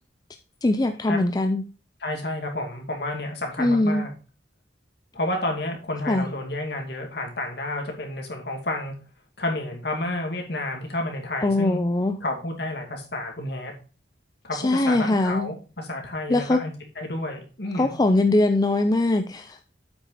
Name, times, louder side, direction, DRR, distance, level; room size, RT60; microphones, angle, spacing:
voice 1, 0.6-1.6 3.6-4.0 6.1-6.3 11.4-12.2 14.5-15.5 16.3-16.6 17.7-19.6, left 2 dB, 20° left, 6 dB, 0.4 m, -21 dB
voice 2, 2.0-4.1 5.1-8.9 9.4-11.8 12.2-13.7 14.4-18.0, left 1 dB, 60° left, 2 dB, 2.5 m, -30 dB
8.2 x 6.1 x 4.1 m, 0.35 s
head